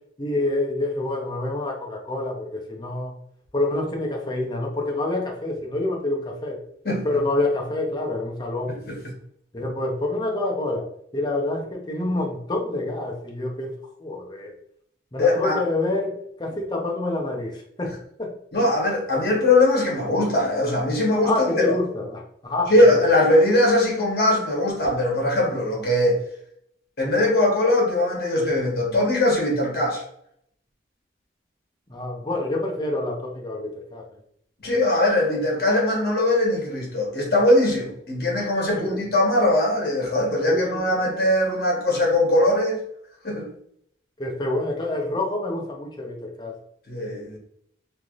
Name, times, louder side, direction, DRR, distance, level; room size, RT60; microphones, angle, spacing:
voice 1, 0.2-3.1 3.5-6.6 7.0-8.8 9.5-10.9 11.1-14.5 15.1-18.3 21.2-23.0 31.9-34.1 38.8-39.0 40.5-40.9 44.2-46.6, left 2 dB, 25° left, 1 dB, 0.5 m, -27 dB
voice 2, 8.7-9.0 15.2-15.6 18.5-21.7 22.7-26.2 27.0-30.0 34.6-42.8 43.2-43.5 46.9-47.4, left 1 dB, 55° left, -1 dB, 1.0 m, -21 dB
3.2 x 2.6 x 2.4 m, 0.69 s
head